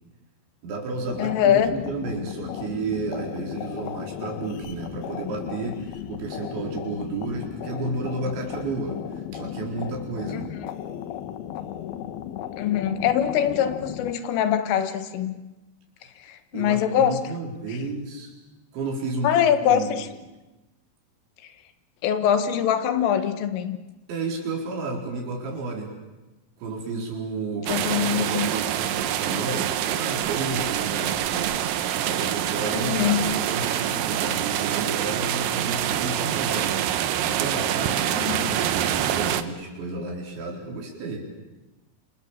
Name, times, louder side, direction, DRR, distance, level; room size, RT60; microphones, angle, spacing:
voice 1, 0.6-10.5 16.5-18.3 18.7-19.9 24.1-26.0 26.6-41.3, right 3 dB, 65° right, 1 dB, 6.7 m, -32 dB
sound 1, 1.0-14.1, left 10 dB, 65° left, 2.8 m, -35 dB
voice 2, 1.2-1.8 10.3-10.4 12.6-15.4 16.2-17.3 19.2-20.1 22.0-23.8 27.7-28.5 32.7-33.4 38.1-38.5, left 9 dB, 85° left, 10 dB, 4.1 m, -23 dB
sound 2, 27.7-39.4, right 11 dB, 85° right, 2.0 m, -26 dB
27.5 x 27.5 x 7.5 m, 1.1 s
omnidirectional pair, 5.7 m